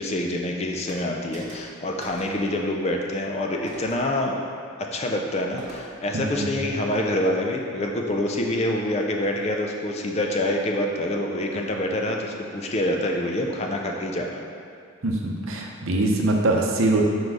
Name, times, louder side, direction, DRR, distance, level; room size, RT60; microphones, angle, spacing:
voice 1, 0.0-4.4 4.9-14.4, left 1 dB, 30° left, 1 dB, 0.4 m, -26 dB
sound 1, 0.9-1.0 1.3-1.7 2.0-2.4 3.7-4.1 5.6-6.0, right 1 dB, 35° right, 0.9 m, -42 dB
voice 2, 6.1-6.5 15.0-17.1, right 2 dB, 70° right, 0 dB, 0.7 m, -23 dB
4.7 x 4.2 x 4.8 m, 2.3 s
head